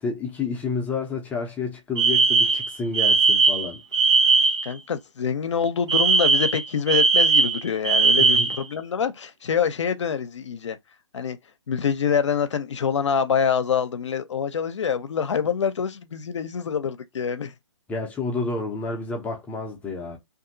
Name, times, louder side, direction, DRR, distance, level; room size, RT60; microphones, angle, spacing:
voice 1, 0.0-3.8 8.2-8.5 17.9-20.2, left 4 dB, 10° left, 0.6 m, -30 dB
Alarm, 2.0-4.7 5.9-8.6, right 4 dB, 65° right, 1.0 m, -19 dB
voice 2, 4.6-10.8 11.1-11.4 11.7-17.5, left 7 dB, 70° left, 0.6 m, -25 dB
2.8 x 2.6 x 2.6 m
hypercardioid pair, 145°, 16 cm